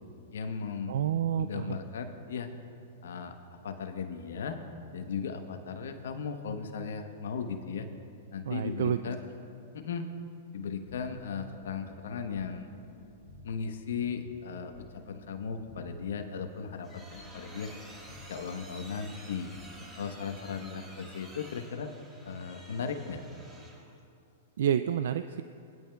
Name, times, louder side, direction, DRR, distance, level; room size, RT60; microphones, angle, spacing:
voice 1, 0.3-0.9 1.3-2.5 3.0-3.3 3.6-4.6 4.9-7.9 8.3-9.3 9.7-10.1 10.5-12.7 13.4-17.7 18.3-19.5 20.0-21.9 22.2-23.2, left 6 dB, 75° left, 6 dB, 1.0 m, -37 dB
voice 2, 0.9-1.8 8.4-9.0 24.6-25.4, right 9 dB, 70° right, 10 dB, 0.3 m, -29 dB
sound 1, 10.9-20.5, left 1 dB, 45° left, 2.9 m, -54 dB
sound 2, 16.4-24.0, right 1 dB, 15° right, 3.1 m, -51 dB
20.0 x 11.0 x 2.3 m, 2.5 s
hypercardioid pair, 115°, 0 cm